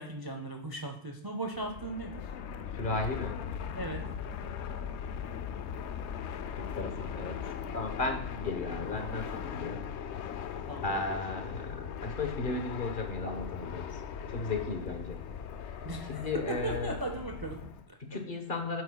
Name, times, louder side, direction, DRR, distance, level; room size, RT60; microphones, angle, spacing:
voice 1, 0.0-2.3 3.7-4.1 10.7-10.9 15.8-18.0, right 2 dB, 25° right, 3 dB, 0.5 m, -37 dB
Fixed-wing aircraft airplane, 1.5-17.9, left 7 dB, 75° left, 0.8 m, -39 dB
voice 2, 2.8-3.4 6.6-7.4 7.7-9.8 10.8-14.0 14.3-15.2 16.1-16.9 18.1-18.8, left 3 dB, 45° left, 4 dB, 1.2 m, -35 dB
9.0 x 7.8 x 2.3 m, 0.75 s
omnidirectional pair, 1.2 m